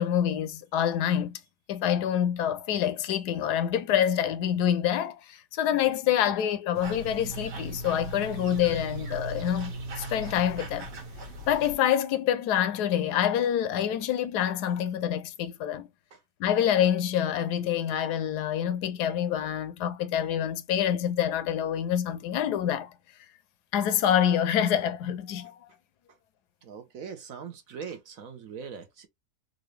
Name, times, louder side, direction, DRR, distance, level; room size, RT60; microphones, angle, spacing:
voice 1, 0.0-1.4 1.7-9.7 10.0-10.9 11.5-15.9 16.4-22.9 23.7-25.6, left 10 dB, 75° left, 1.1 m, -26 dB
sound 1, 6.7-11.8, right 2 dB, 90° right, 1.8 m, -38 dB
voice 2, 26.6-29.1, right 6 dB, 60° right, 1.1 m, -41 dB
3.8 x 2.6 x 3.1 m
omnidirectional pair, 1.8 m